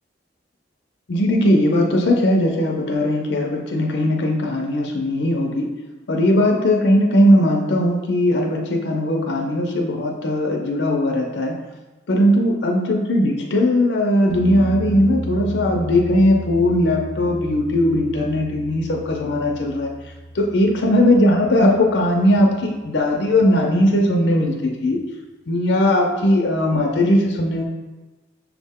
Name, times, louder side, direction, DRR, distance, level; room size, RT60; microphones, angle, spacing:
voice 1, 1.1-5.7 6.1-11.6 12.1-19.9 20.3-25.0 25.5-27.6, left 1 dB, 70° left, 1 dB, 0.5 m, -18 dB
sound 1, 14.3-21.9 24.9-25.0, equal, 40° right, 0.6 m, -33 dB
5.9 x 2.1 x 3.5 m, 1.2 s
head